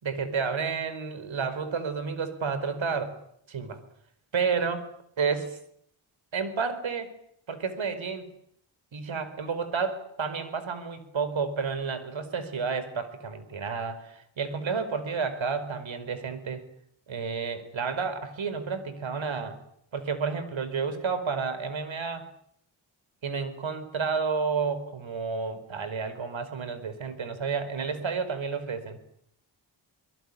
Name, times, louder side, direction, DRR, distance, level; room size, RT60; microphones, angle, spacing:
voice 1, 0.0-3.1 3.5-3.8 4.3-4.9 5.2-5.6 6.3-7.1 7.5-8.3 8.9-16.6 17.1-19.6 19.9-22.3 23.2-29.0, right 5 dB, 70° right, 12 dB, 4.9 m, -31 dB
24.5 x 22.0 x 9.9 m, 0.70 s
cardioid pair, 65°, 48 cm